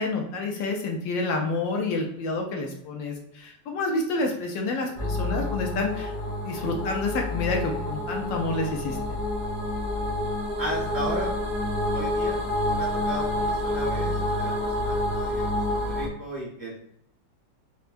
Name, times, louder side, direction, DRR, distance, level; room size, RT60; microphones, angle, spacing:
voice 1, 0.0-6.1 6.4-9.0, left 3 dB, 75° left, 1 dB, 1.2 m, -28 dB
sound 1, 5.0-16.1, left 1 dB, 60° right, 0.4 m, -28 dB
voice 2, 10.6-11.3 11.9-16.8, equal, 20° left, -6 dB, 0.5 m, -35 dB
4.4 x 2.2 x 2.5 m, 0.72 s
omnidirectional pair, 2.1 m